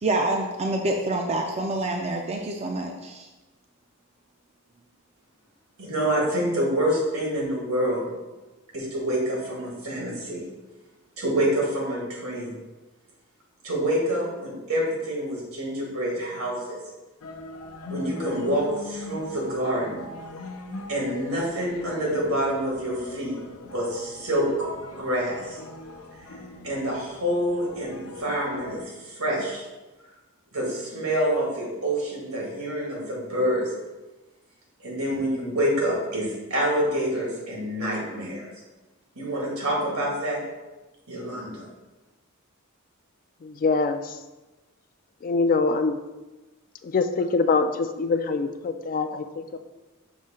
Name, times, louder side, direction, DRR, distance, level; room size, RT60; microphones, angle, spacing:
voice 1, 0.0-3.3, right 2 dB, 30° right, 2 dB, 0.4 m, -27 dB
voice 2, 5.8-8.1 8.7-10.4 11.2-12.6 13.6-16.8 17.9-20.0 20.9-23.4 23.7-24.7 25.0-25.6 26.6-29.6 30.5-33.7 34.8-38.5 39.2-40.4 41.1-41.7, right 1 dB, 80° right, -3 dB, 2.0 m, -27 dB
sound 1, 17.2-28.8, left 3 dB, 85° left, 0.7 m, -40 dB
voice 3, 43.4-44.1 45.2-46.0 46.9-49.6, left 4 dB, 40° left, 9 dB, 0.3 m, -24 dB
6.1 x 2.7 x 5.6 m, 1.1 s
head